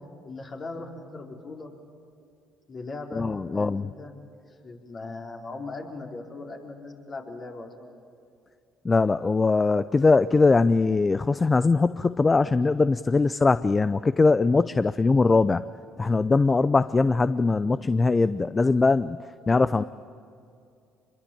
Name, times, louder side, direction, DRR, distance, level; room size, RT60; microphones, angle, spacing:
voice 1, 0.2-1.7 2.7-3.3 3.5-4.2 4.5-7.9 19.5-19.9, left 3 dB, 45° left, 1 dB, 4.5 m, -39 dB
voice 2, 3.1-3.9 8.8-15.6 16.0-19.2 19.5-19.8, left 3 dB, 25° left, 15 dB, 0.6 m, -21 dB
25.5 x 22.0 x 8.8 m, 2.5 s
hypercardioid pair, 65°, 0 cm